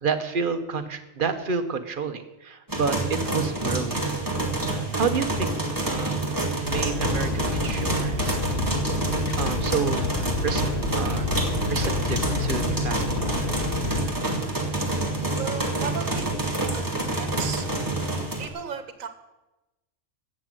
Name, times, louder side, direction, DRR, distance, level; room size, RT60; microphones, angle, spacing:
voice 1, 0.0-4.1 4.9-5.5 5.8-6.2 6.6-8.4 9.4-10.6 10.9-11.3 11.7-13.6, right 5 dB, 45° right, 8 dB, 1.1 m, -30 dB
sound 1, 2.7-18.5, right 2 dB, 15° right, 2.0 m, -27 dB
sound 2, 6.7-14.1, left 4 dB, 45° left, 1.2 m, -29 dB
voice 2, 15.4-16.3 16.6-17.6 18.4-19.1, right 6 dB, 85° right, 10 dB, 1.4 m, -35 dB
11.5 x 7.6 x 9.0 m, 1.0 s
omnidirectional pair, 1.3 m